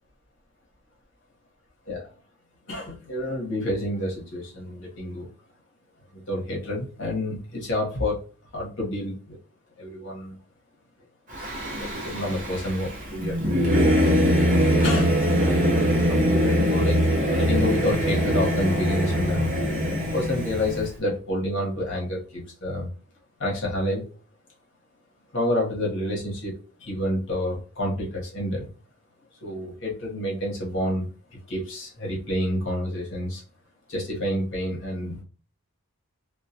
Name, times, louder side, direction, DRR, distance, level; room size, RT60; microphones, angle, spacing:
voice 1, 2.7-5.3 6.1-8.2 8.5-9.4 9.8-10.3 11.8-13.8 14.8-17.0 17.4-19.5 20.1-22.9 23.4-24.1 25.3-26.5 26.8-28.7 29.4-33.4 33.9-35.2, left 1 dB, 55° left, -3 dB, 0.9 m, -29 dB
Singing / Musical instrument, 11.3-20.9, equal, 35° right, 0.6 m, -22 dB
2.2 x 2.2 x 2.6 m, 0.37 s
head